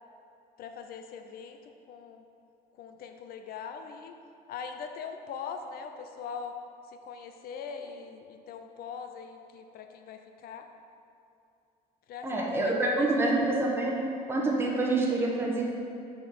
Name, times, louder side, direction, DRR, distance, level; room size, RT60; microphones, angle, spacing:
voice 1, 0.6-2.2 2.8-4.2 4.5-6.6 6.9-10.7 12.1-13.1, left 6 dB, 65° left, 6 dB, 0.4 m, -41 dB
voice 2, 12.2-13.9 14.3-15.6, right 2 dB, 15° right, -3 dB, 0.9 m, -26 dB
6.1 x 4.7 x 3.6 m, 2.6 s
cardioid pair, 110°, 17 cm